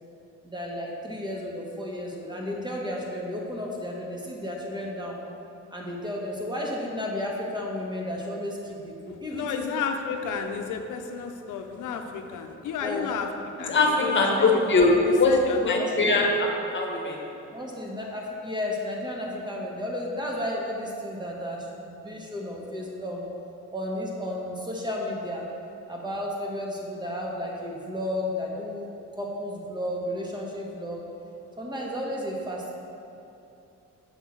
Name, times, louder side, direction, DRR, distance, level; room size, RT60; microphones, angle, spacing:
voice 1, 0.4-5.2 5.7-9.6 12.8-13.1 15.8-16.1 17.5-23.2 23.7-25.5 25.9-28.9 29.1-31.0 31.6-32.7, left 1 dB, 15° right, -2 dB, 1.4 m, -33 dB
voice 2, 9.3-13.3 13.6-14.9 15.2-15.8 16.1-16.3, left 6 dB, 80° left, 5 dB, 0.7 m, -32 dB
voice 3, 13.7-15.4 15.7-17.3, left 3 dB, 40° left, 0 dB, 1.3 m, -22 dB
7.2 x 3.6 x 6.0 m, 2.8 s
cardioid pair, 90°, 30 cm